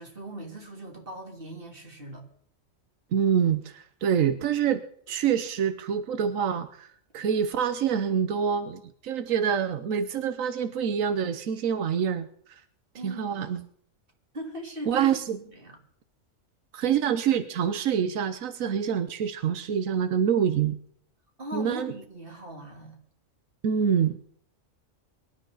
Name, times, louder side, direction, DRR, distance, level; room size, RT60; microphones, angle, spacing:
voice 1, 0.0-2.2 12.9-13.5 14.3-15.1 15.4-15.8 16.7-16.8 21.4-23.0, right 1 dB, 45° right, 3.2 m, -40 dB
voice 2, 3.1-6.9 7.1-12.3 13.0-13.6 14.9-15.4 16.7-20.8 21.5-21.9 23.6-24.2, right 8 dB, 90° right, 1.2 m, -26 dB
23.5 x 11.5 x 3.9 m
omnidirectional pair, 1.3 m